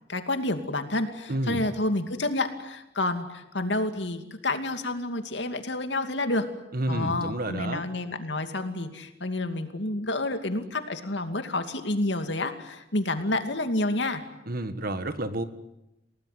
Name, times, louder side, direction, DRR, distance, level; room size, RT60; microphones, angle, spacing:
voice 1, 0.1-6.5 6.9-14.2, left 2 dB, 70° left, 7 dB, 2.6 m, -29 dB
voice 2, 1.3-1.6 6.7-7.8 14.5-15.4, right 1 dB, 55° right, 11 dB, 1.7 m, -30 dB
29.0 x 18.5 x 9.4 m, 0.90 s
head